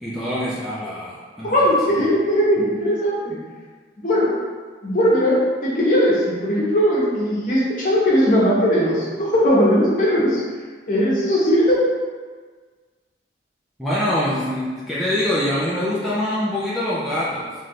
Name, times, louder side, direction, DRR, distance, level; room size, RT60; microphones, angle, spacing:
voice 1, 0.0-1.7 13.8-17.5, left 1 dB, ahead, -9 dB, 0.5 m, -24 dB
voice 2, 1.4-3.4 4.0-4.3 4.8-10.4 10.9-11.8, equal, 45° left, -6 dB, 1.0 m, -18 dB
3.2 x 2.5 x 4.1 m, 1.5 s
head